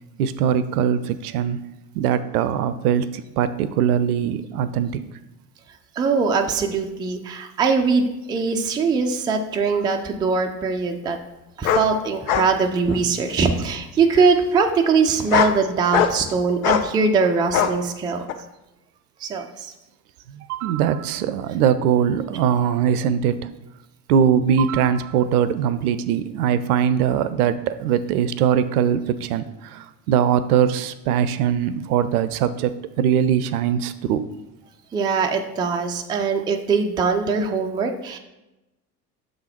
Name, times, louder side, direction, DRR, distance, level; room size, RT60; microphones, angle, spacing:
voice 1, 0.2-1.6 1.9-5.0 20.3-23.5 24.1-34.3, right 8 dB, 65° right, 14 dB, 0.5 m, -21 dB
voice 2, 6.0-11.2 11.6-18.2 19.2-19.7 34.9-38.2, right 5 dB, 10° right, 3 dB, 0.3 m, -21 dB
sound 1, 9.6-9.7 11.6-11.9 12.3-12.5 12.9-13.4 14.2-14.3 15.1-15.6 15.9-16.3 16.6-16.9 17.5-17.7 18.3-18.4, left 8 dB, 60° left, 0.7 m, -21 dB
6.8 x 3.8 x 4.3 m, 0.97 s
figure-of-eight pair, 70°, 48 cm